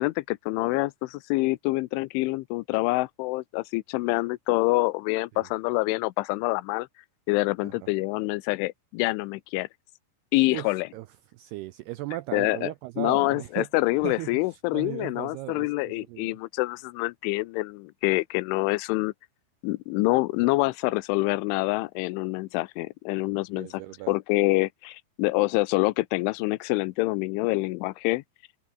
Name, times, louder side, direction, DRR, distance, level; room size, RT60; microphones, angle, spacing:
voice 1, 0.0-6.9 7.3-9.7 10.3-10.9 12.3-12.7 13.0-19.1 19.6-23.7 24.1-28.2, left 22 dB, 85° left, 3.2 m, -26 dB
voice 2, 10.5-11.1 11.3-13.7 14.0-16.4 23.6-24.1, right 18 dB, 85° right, 2.3 m, -37 dB
open air
omnidirectional pair, 5.4 m